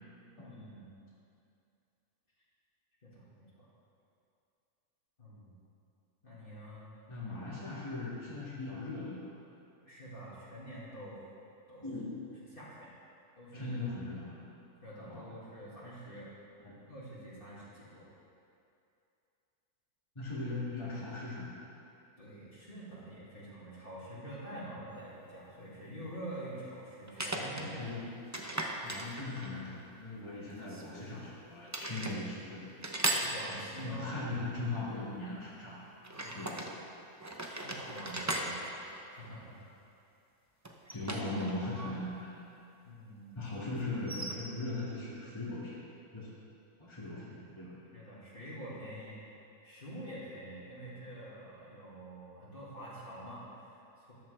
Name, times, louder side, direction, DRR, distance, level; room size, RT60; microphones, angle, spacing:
voice 1, 0.4-1.0 3.0-3.7 5.2-5.6 6.2-6.8 9.8-11.3 11.7-12.0 12.5-12.9 13.4-13.8 14.8-16.3 16.9-18.1 22.2-27.8 33.2-34.2 36.1-36.6 37.4-39.6 40.9-41.0 42.8-43.4 47.0-47.3 47.9-49.3 49.6-54.1, right 1 dB, 35° left, -8 dB, 2.4 m, -47 dB
voice 2, 7.1-9.2 11.8-12.1 13.5-14.4 15.0-15.3 16.6-16.8 20.2-21.6 27.5-28.1 28.8-32.6 33.8-35.8 36.3-36.6 40.9-42.4 43.3-45.8 46.1-46.3 46.8-47.7, left 2 dB, 20° left, -8 dB, 2.1 m, -39 dB
sound 1, 24.9-25.0 27.1-27.7 28.3-29.7 30.6-31.3 31.7-32.2 32.8-33.9 36.0-36.7 37.2-39.6 40.6-41.9 42.2-42.3 43.9-44.3, right 1 dB, 20° right, 0.4 m, -37 dB
13.5 x 10.5 x 3.4 m, 2.6 s
omnidirectional pair, 1.6 m